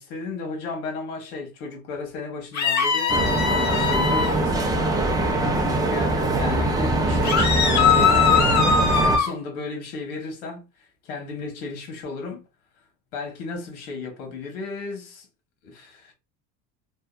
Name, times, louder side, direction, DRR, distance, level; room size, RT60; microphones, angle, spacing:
voice 1, 0.0-5.0 5.6-12.4 13.1-15.3 15.6-16.1, left 3 dB, 85° left, 1.2 m, -34 dB
sound 1, 2.5-4.3 7.2-9.3, left 6 dB, 40° left, 1.1 m, -21 dB
sound 2, 3.1-9.2, right 2 dB, 10° right, 0.4 m, -22 dB
2.8 x 2.2 x 2.3 m
supercardioid pair, 105°, 44 cm